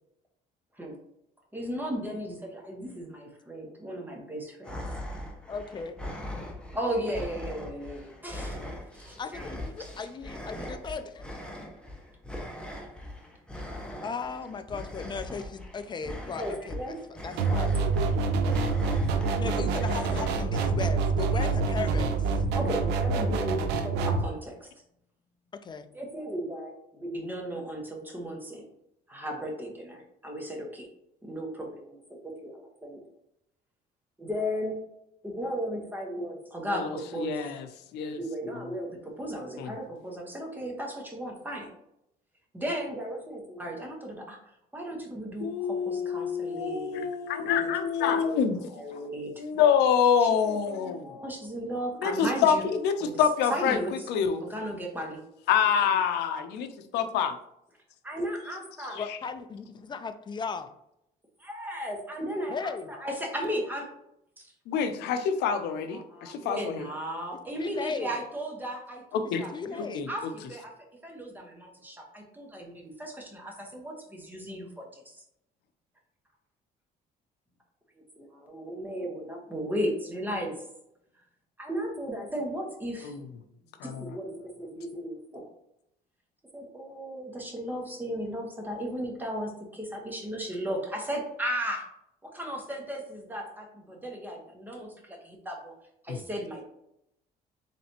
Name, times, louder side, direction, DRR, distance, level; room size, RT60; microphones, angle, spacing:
voice 1, 1.5-4.8 6.7-8.6 8.9-9.5 9.8-9.9 10.5-10.7 16.2-16.9 20.0-20.1 21.3-21.4 22.5-24.7 25.9-28.7 29.1-30.9 31.2-33.0 34.2-34.8 35.2-37.5 38.1-41.7 42.5-44.4 44.7-47.1 47.5-48.4 48.7-49.3 50.2-52.7 53.0-53.2 53.5-54.1 54.4-55.2 58.0-59.0 61.4-63.9 64.4-64.5 65.9-70.7 71.0-75.2 77.9-80.6 81.6-83.2 83.8-85.5 86.5-91.9 92.2-95.7 96.0-96.6, equal, 10° right, 0 dB, 1.1 m, -36 dB
sound 1, 4.6-20.3, left 1 dB, 5° left, 0.7 m, -40 dB
voice 2, 5.5-5.9 9.2-11.2 14.0-16.7 17.2-17.8 19.3-22.1 25.7-25.8 59.0-60.7 62.5-62.8 67.6-68.1 69.5-70.1, left 5 dB, 25° left, 10 dB, 0.4 m, -36 dB
sound 2, 17.4-24.2, right 4 dB, 90° right, 0.6 m, -26 dB
voice 3, 37.2-37.7 37.9-38.2 39.6-39.7 45.4-48.6 49.4-51.1 52.0-53.8 54.1-54.4 55.5-57.3 59.0-59.2 64.7-66.9 69.1-69.4 69.8-70.1 83.0-83.2 83.8-84.0 96.1-96.2, left 7 dB, 85° left, 8 dB, 0.5 m, -26 dB
3.9 x 3.3 x 2.8 m, 0.79 s
cardioid pair, 110°, 17 cm